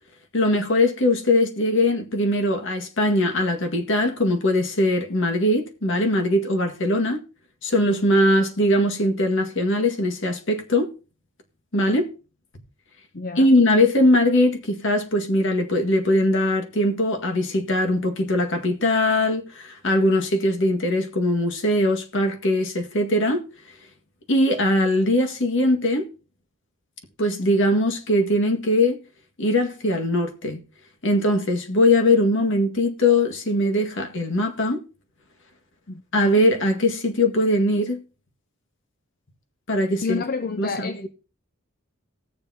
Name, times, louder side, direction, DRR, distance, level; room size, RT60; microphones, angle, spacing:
voice 1, 0.3-7.2 7.6-10.9 11.7-12.1 13.4-23.4 24.3-26.1 27.2-29.0 29.4-30.6 31.0-34.8 36.1-38.0 39.7-40.2 40.6-41.1, left 1 dB, 65° left, 1.9 m, -21 dB
voice 2, 13.1-13.5 35.9-36.0 40.0-41.1, left 4 dB, 45° left, 0.7 m, -29 dB
19.0 x 7.0 x 2.9 m
head